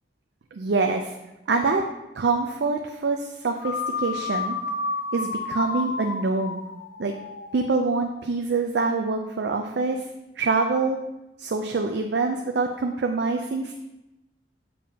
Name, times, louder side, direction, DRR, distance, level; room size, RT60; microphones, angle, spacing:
voice 1, 0.5-1.1 1.5-1.8 2.2-4.6 5.1-6.6 7.0-7.1 7.5-10.1 10.4-11.0 11.4-13.7, right 3 dB, 70° right, 4 dB, 0.5 m, -25 dB
sound 1, 3.6-8.1, left 4 dB, 70° left, 0.6 m, -31 dB
7.4 x 6.8 x 2.8 m, 0.94 s
head